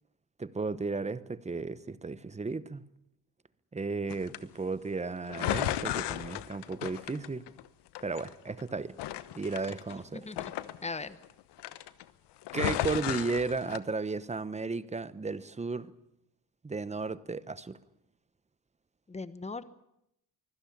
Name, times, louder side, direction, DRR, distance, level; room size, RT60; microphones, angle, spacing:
voice 1, 0.4-2.8 3.7-7.4 8.0-9.0 9.3-10.3 12.5-15.9 16.6-17.8, right 4 dB, 15° right, 0.9 m, -34 dB
sound 1, 4.1-4.4 5.3-7.7 7.9-8.6 9.0-11.3 11.6-12.0 12.4-13.8, left 13 dB, 85° left, 1.2 m, -34 dB
voice 2, 10.1-10.5 10.8-11.2 19.1-19.6, left 3 dB, 15° left, 1.2 m, -38 dB
24.5 x 16.5 x 8.6 m
cardioid pair, 115°, 40 cm